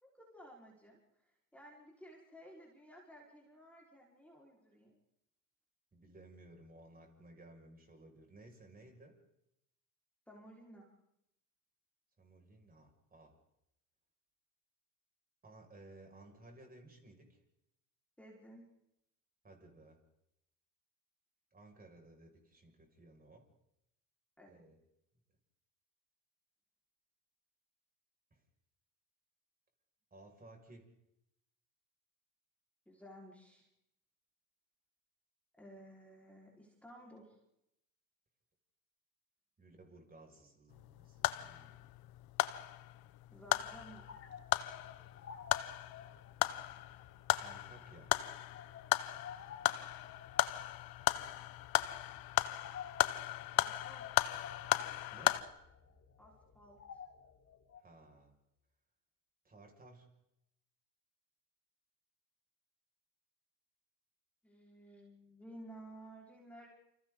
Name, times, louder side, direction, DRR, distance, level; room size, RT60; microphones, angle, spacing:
voice 1, 0.0-1.0 1.5-5.0 10.3-10.9 18.2-18.6 24.4-24.6 32.9-33.7 35.6-37.4 43.3-44.1 53.5-54.1 56.2-57.0 64.4-66.7, right 1 dB, 5° left, -2 dB, 5.1 m, -55 dB
voice 2, 5.9-9.2 12.2-13.4 15.4-17.4 19.4-20.0 21.5-23.5 24.5-24.8 28.3-28.4 30.1-30.9 39.6-41.9 47.4-48.1 55.1-55.4 57.7-58.4 59.4-60.1, right 2 dB, 20° right, 1 dB, 6.5 m, -58 dB
sound 1, 40.7-55.4, left 17 dB, 50° left, 1.4 m, -36 dB
sound 2, 43.5-57.8, left 7 dB, 30° left, 4.4 m, -54 dB
29.0 x 27.0 x 4.1 m, 0.83 s
hypercardioid pair, 95°, 47 cm